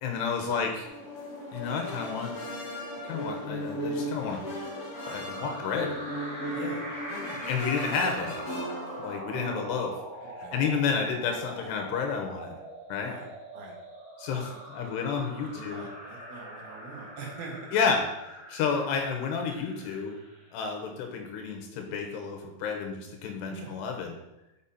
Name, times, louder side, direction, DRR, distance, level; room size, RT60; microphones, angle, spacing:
voice 1, 0.0-0.7 1.5-2.3 3.0-4.4 5.1-6.0 7.5-8.5 9.0-9.9 10.5-12.5 12.9-13.1 14.2-15.8 17.7-18.0 18.5-20.2 20.5-24.2, left 6 dB, 85° left, 3 dB, 3.2 m, -30 dB
sound 1, 0.8-9.1, equal, 35° left, 3.3 m, -36 dB
sound 2, 4.9-20.6, right 1 dB, 15° right, 1.2 m, -43 dB
voice 2, 6.5-7.4 9.3-9.7 10.4-10.6 13.0-13.3 13.5-13.8 14.4-15.0 15.4-17.7 23.5-23.7, right 3 dB, 70° right, -1 dB, 3.0 m, -43 dB
7.1 x 5.9 x 4.2 m, 0.96 s
omnidirectional pair, 4.7 m